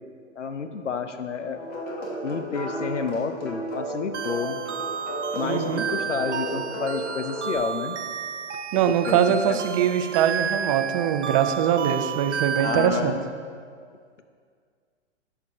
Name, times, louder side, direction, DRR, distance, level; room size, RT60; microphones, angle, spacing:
voice 1, 0.4-1.6 2.2-4.6 5.3-8.0 9.1-9.6 12.6-13.2, left 5 dB, 75° left, 8 dB, 0.8 m, -30 dB
sound 1, 1.6-7.6, right 1 dB, 25° left, 1.4 m, -33 dB
sound 2, 4.1-12.9, right 7 dB, 70° right, 0.7 m, -32 dB
voice 2, 5.4-5.8 8.7-13.2, right 9 dB, 30° right, 8 dB, 0.6 m, -22 dB
16.0 x 6.8 x 2.8 m, 2.1 s
figure-of-eight pair, 110°, 36 cm